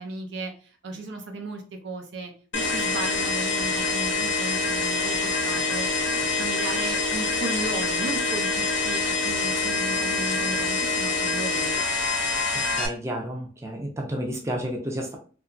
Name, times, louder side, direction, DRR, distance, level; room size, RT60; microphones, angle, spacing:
voice 1, 0.0-5.9 6.4-11.7, right 2 dB, 75° right, 4 dB, 0.6 m, -35 dB
sound 1, 2.5-12.9, left 3 dB, 80° left, 0.6 m, -25 dB
voice 2, 12.8-15.2, equal, 15° right, 0 dB, 0.4 m, -31 dB
2.8 x 2.2 x 2.5 m, 0.39 s
head